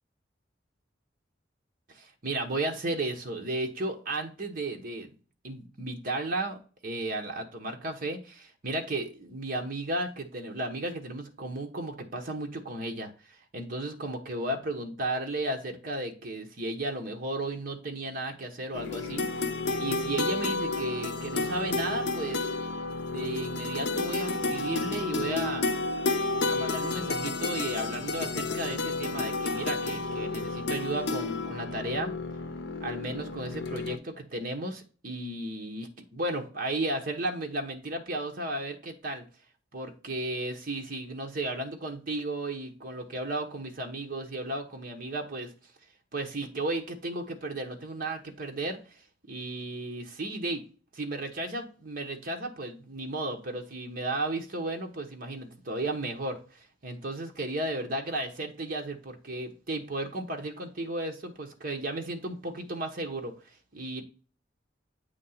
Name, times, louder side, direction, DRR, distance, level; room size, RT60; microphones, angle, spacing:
voice 1, 1.9-5.1 5.4-13.1 13.5-19.2 19.8-22.5 23.1-25.7 26.5-32.1 32.8-39.2 39.7-45.5 46.1-49.0 49.3-50.6 50.9-63.3 63.7-64.0, right 2 dB, 50° right, 2 dB, 1.2 m, -34 dB
sound 1, 18.7-34.0, left 3 dB, 65° left, 0.7 m, -31 dB
8.4 x 2.9 x 5.6 m, 0.38 s
head